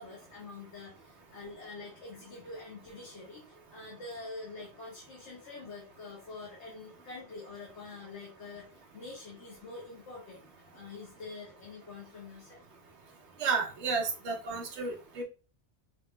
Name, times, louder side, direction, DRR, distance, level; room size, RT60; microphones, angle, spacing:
voice 1, 0.0-12.6, left 3 dB, 90° left, -3 dB, 1.4 m, -46 dB
voice 2, 13.4-15.2, right 4 dB, 85° right, 0 dB, 1.1 m, -32 dB
5.7 x 2.8 x 2.2 m, 0.34 s
omnidirectional pair, 1.1 m